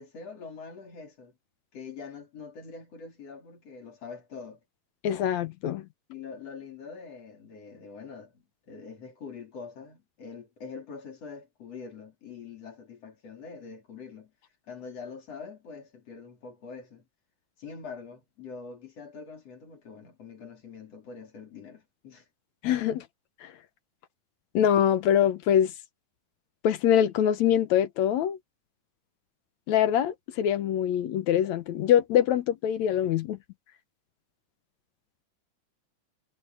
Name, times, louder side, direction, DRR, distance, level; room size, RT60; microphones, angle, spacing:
voice 1, 0.0-1.3 1.7-4.6 6.1-14.3 14.7-17.0 17.6-22.3, left 5 dB, 55° left, 4.4 m, -44 dB
voice 2, 5.0-5.8 22.6-23.0 23.4-23.5 24.5-25.7 26.6-28.4 29.7-33.4, left 10 dB, 70° left, 2.1 m, -24 dB
omnidirectional pair, 3.6 m